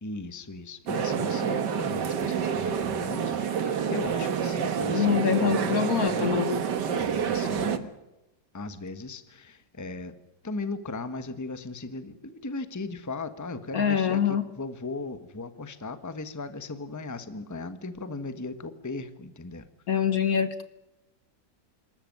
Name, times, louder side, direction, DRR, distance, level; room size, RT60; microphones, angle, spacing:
voice 1, 0.0-6.6 6.8-8.0 8.5-10.1 10.4-19.7, left 3 dB, 10° left, 10 dB, 1.1 m, -37 dB
sound 1, 0.9-7.8, right 7 dB, 65° right, 1.9 m, -28 dB
voice 2, 4.9-6.6 13.7-14.4 19.9-20.6, left 7 dB, 55° left, 12 dB, 1.5 m, -25 dB
27.0 x 14.0 x 9.3 m, 0.97 s
omnidirectional pair, 2.0 m